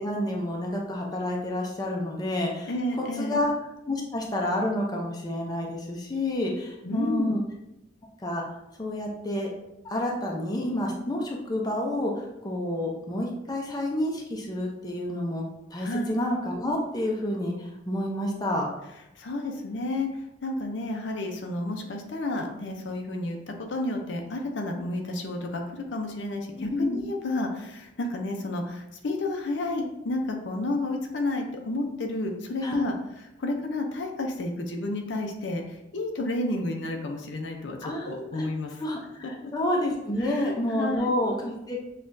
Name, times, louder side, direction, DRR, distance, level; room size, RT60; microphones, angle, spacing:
voice 1, 0.0-2.7 3.2-3.5 3.9-7.4 8.2-8.4 8.8-9.5 9.8-15.4 15.7-18.7 26.6-27.0 32.6-32.8 37.8-38.4 38.8-41.8, left 1 dB, 20° left, -1 dB, 0.5 m, -29 dB
voice 2, 2.6-3.4 6.8-7.3 15.8-16.2 19.2-32.9 33.4-38.7 40.2-41.1, left 2 dB, 65° left, 3 dB, 0.5 m, -31 dB
6.3 x 2.4 x 2.6 m, 0.90 s
head